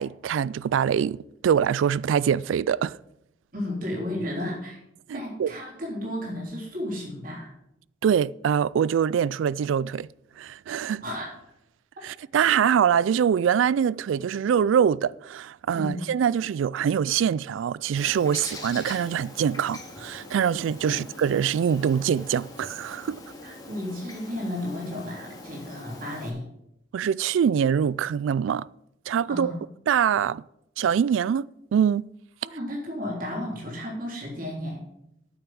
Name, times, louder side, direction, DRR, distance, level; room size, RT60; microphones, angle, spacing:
voice 1, 0.0-3.0 5.1-5.5 8.0-10.1 10.4-11.0 12.0-23.2 26.9-28.7 29.1-29.5 29.9-30.4 30.8-32.0, right 8 dB, 90° right, 0.3 m, -24 dB
voice 2, 3.5-4.8 5.1-7.5 11.0-11.3 15.7-16.0 20.8-21.0 23.4-26.5 29.3-29.6 32.4-34.8, left 1 dB, 45° right, 3.5 m, -33 dB
Bird, 18.0-26.3, left 2 dB, 20° left, 2.0 m, -43 dB
8.9 x 7.0 x 7.6 m
head